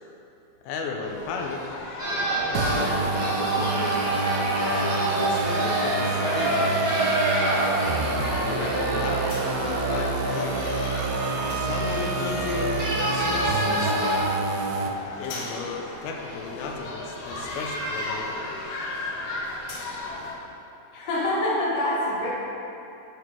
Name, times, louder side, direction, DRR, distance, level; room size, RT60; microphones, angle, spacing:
voice 1, 0.6-1.6 2.5-3.9 4.7-7.1 8.4-10.6 11.3-14.1 15.2-18.4, left 4 dB, 90° left, 1 dB, 2.8 m, -34 dB
sound 1, 1.0-20.4, left 2 dB, 75° left, 2.0 m, -36 dB
sound 2, 2.0-14.2, right 1 dB, 45° right, 1.8 m, -28 dB
sound 3, 2.6-14.9, right 3 dB, 80° right, 2.3 m, -28 dB
voice 2, 20.9-22.3, left 1 dB, 55° left, -7 dB, 2.6 m, -25 dB
8.5 x 4.7 x 4.5 m, 2.8 s
omnidirectional pair, 4.9 m